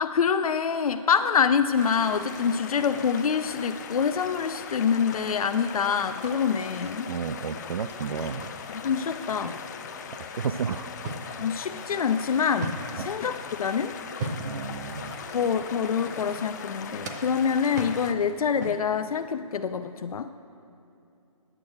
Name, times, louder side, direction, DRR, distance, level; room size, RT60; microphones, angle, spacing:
voice 1, 0.0-7.1 8.7-9.6 11.4-13.9 15.3-20.3, left 6 dB, 90° left, 9 dB, 0.5 m, -26 dB
sound 1, 1.8-18.1, left 6 dB, 30° left, 0.5 m, -40 dB
sound 2, 2.3-2.5 3.6-4.8 5.7-5.8 6.1-7.2 7.5-8.9 9.8-10.5 11.1-11.5 11.8-13.9 14.2-14.3 14.8-16.6, left 5 dB, 50° left, 1.1 m, -50 dB
voice 2, 7.1-8.5 10.2-10.9 13.0-13.1 14.4-15.2, right 6 dB, 80° right, 11 dB, 0.5 m, -32 dB
sound 3, 8.0-10.0 10.5-13.2 14.0-16.8 17.0-19.0, right 3 dB, 30° right, 0.8 m, -39 dB
9.6 x 8.9 x 7.7 m, 2.7 s
hypercardioid pair, 165°, 18 cm